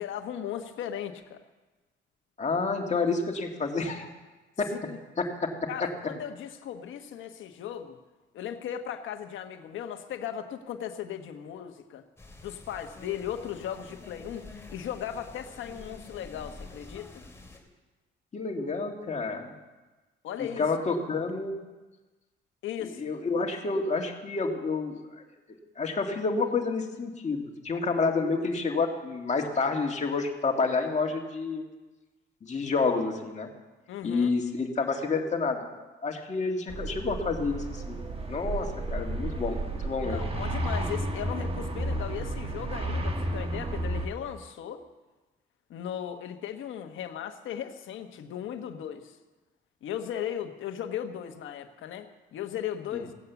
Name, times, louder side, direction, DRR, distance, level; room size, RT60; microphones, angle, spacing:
voice 1, 0.0-1.4 4.7-5.0 5.7-8.0 8.3-12.0 12.4-17.2 20.2-20.7 22.6-23.0 33.9-34.4 40.0-44.8 45.7-49.2 49.8-53.1, left 9 dB, 80° left, 7 dB, 1.2 m, -37 dB
voice 2, 2.4-4.1 4.6-4.7 5.2-5.5 18.3-19.5 20.4-21.6 22.8-25.2 25.8-31.6 32.4-33.5 34.0-35.7 36.0-38.0 38.3-40.2, left 4 dB, 35° left, 2 dB, 2.1 m, -29 dB
sound 1, 12.2-17.6, left 2 dB, 15° left, 2.7 m, -47 dB
sound 2, 36.7-44.1, right 1 dB, 30° right, 1.5 m, -32 dB
16.5 x 8.4 x 7.0 m, 1.2 s
cardioid pair, 90°, 20 cm